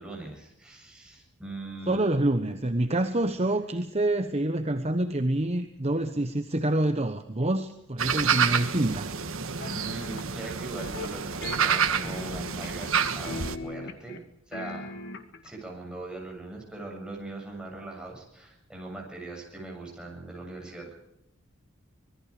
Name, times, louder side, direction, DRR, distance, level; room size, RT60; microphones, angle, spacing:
voice 1, 0.0-2.2 9.7-14.9 15.4-21.0, right 2 dB, 5° right, -1 dB, 7.7 m, -40 dB
voice 2, 1.9-9.1, right 1 dB, 30° right, 7 dB, 1.1 m, -27 dB
sound 1, 8.0-13.6, right 6 dB, 65° right, 1.5 m, -28 dB
sound 2, 9.6-10.3 10.8-11.1 11.4-13.0 13.2-14.2 14.5-15.5, left 3 dB, 55° left, 2.0 m, -39 dB
25.5 x 20.5 x 5.0 m, 0.86 s
head